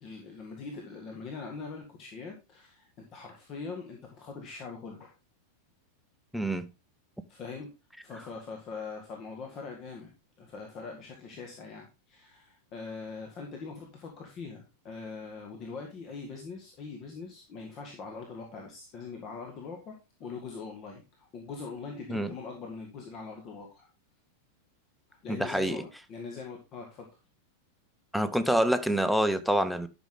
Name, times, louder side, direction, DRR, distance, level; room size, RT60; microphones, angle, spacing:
voice 1, 0.0-5.1 7.3-7.7 8.0-10.1 10.4-23.9 25.2-27.1, left 4 dB, 35° left, 1.9 m, -42 dB
voice 2, 6.3-6.7 22.1-22.3 25.3-25.8 28.1-29.9, right 1 dB, ahead, 0.9 m, -26 dB
11.5 x 6.3 x 3.7 m
figure-of-eight pair, 90°, 0 cm